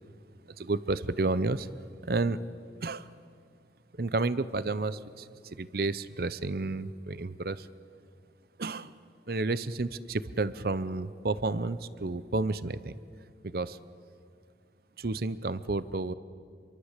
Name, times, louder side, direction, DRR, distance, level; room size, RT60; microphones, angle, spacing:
voice 1, 0.5-1.7 2.0-2.4 2.8-3.1 3.9-7.7 8.6-8.9 9.3-13.0 13.4-13.8 15.0-16.1, right 3 dB, 55° right, 16 dB, 0.7 m, -31 dB
27.0 x 23.0 x 8.2 m, 2.3 s
head